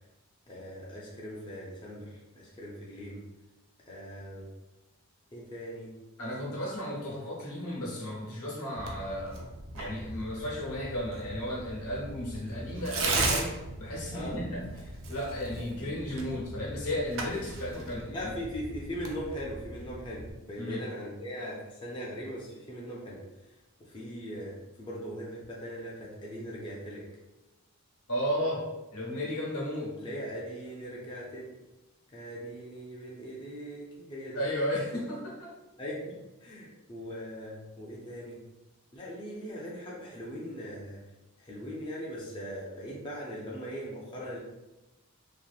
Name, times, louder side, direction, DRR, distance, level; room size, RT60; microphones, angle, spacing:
voice 1, 0.5-3.2 3.8-4.5 5.3-5.9 14.1-14.4 15.7-16.4 18.1-23.2 23.8-27.0 30.0-31.5 32.1-34.4 35.8-38.4 38.9-41.0 41.4-44.4, equal, 20° left, -5 dB, 0.4 m, -40 dB
voice 2, 6.2-9.4 9.7-18.3 20.6-20.9 28.1-30.0 34.3-35.5, left 1 dB, 90° left, -4 dB, 0.9 m, -34 dB
Tearing, 8.8-20.3, right 2 dB, 60° right, 0.4 m, -37 dB
2.7 x 2.4 x 2.3 m, 1.0 s
head